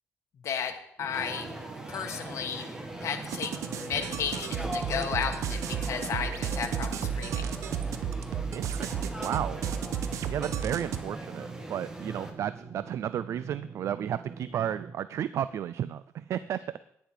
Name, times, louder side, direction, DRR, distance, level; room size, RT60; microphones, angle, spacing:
voice 1, 0.4-1.5 1.9-2.7 3.0-7.5, left 7 dB, 65° left, 4 dB, 1.3 m, -34 dB
sound 1, 1.0-14.9, right 5 dB, 40° right, 1.2 m, -44 dB
sound 2, 1.1-12.3, right 1 dB, 10° right, 1.5 m, -40 dB
sound 3, 3.3-11.0, right 8 dB, 85° right, 0.9 m, -33 dB
voice 2, 8.5-9.6 10.3-16.6, right 10 dB, 65° right, 15 dB, 0.4 m, -33 dB
10.5 x 10.0 x 4.8 m, 0.74 s
cardioid pair, 140°, 5 cm